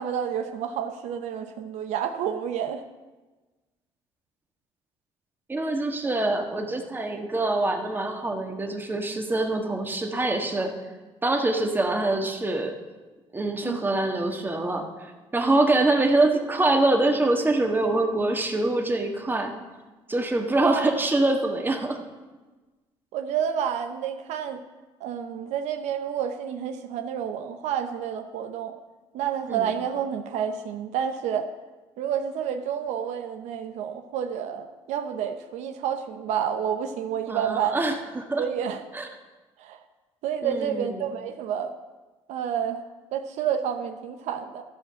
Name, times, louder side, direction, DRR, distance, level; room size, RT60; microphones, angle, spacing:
voice 1, 0.0-2.8 13.6-13.9 20.7-20.9 23.1-24.6 25.0-28.7 29.1-31.4 32.0-37.8 38.4-38.8 39.6-39.8 40.2-41.7 42.3-42.8 43.1-44.6, right 8 dB, 85° right, 7 dB, 0.7 m, -29 dB
voice 2, 5.5-10.7 11.2-12.7 13.3-14.9 15.3-19.5 20.1-22.0 29.5-29.7 37.3-38.4 38.9-39.1 40.4-41.0, right 2 dB, 15° right, 3 dB, 1.5 m, -24 dB
13.0 x 5.1 x 7.5 m, 1.2 s
cardioid pair, 95°, 12 cm